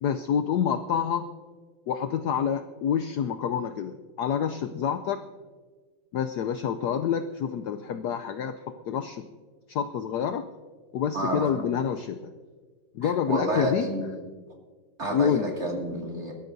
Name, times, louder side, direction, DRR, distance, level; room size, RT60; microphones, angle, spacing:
voice 1, 0.0-1.3 1.9-5.2 6.1-8.6 8.9-9.2 9.7-10.4 10.9-12.3 12.9-13.9 15.1-15.5, left 8 dB, 70° left, 9 dB, 1.0 m, -27 dB
voice 2, 11.1-11.5 13.0-14.1 15.0-16.3, right 1 dB, 35° right, -1 dB, 2.5 m, -29 dB
23.0 x 13.0 x 2.7 m, 1.5 s
omnidirectional pair, 2.2 m